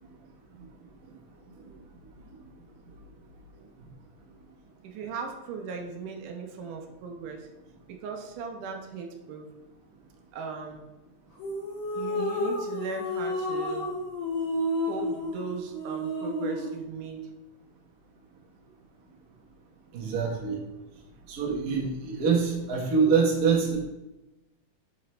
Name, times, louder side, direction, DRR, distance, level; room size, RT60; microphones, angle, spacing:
voice 1, 4.8-7.5 7.9-9.5 10.3-10.8 11.9-13.9 14.9-17.3, right 5 dB, 80° right, 2 dB, 2.2 m, -37 dB
sound 1, 11.4-16.8, left 1 dB, 60° left, 3.0 m, -31 dB
voice 2, 19.9-20.6 21.3-23.8, right 5 dB, 55° right, -4 dB, 1.0 m, -25 dB
5.9 x 5.8 x 3.2 m, 1.0 s
omnidirectional pair, 3.8 m